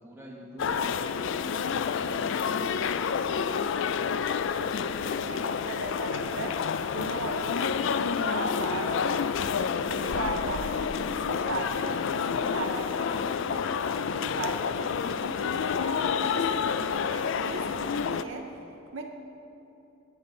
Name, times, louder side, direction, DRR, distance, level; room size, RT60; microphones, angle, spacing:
voice 1, 0.0-3.3, equal, 10° right, -3 dB, 1.5 m, -46 dB
sound 1, 0.6-18.2, left 6 dB, 60° left, 0.3 m, -29 dB
sound 2, 2.7-17.5, left 1 dB, 90° left, 1.6 m, -52 dB
voice 2, 4.4-6.6 6.9-9.5 9.9-18.6 18.9-19.1, right 3 dB, 60° right, 4 dB, 0.6 m, -38 dB
14.5 x 9.8 x 3.9 m, 2.9 s
head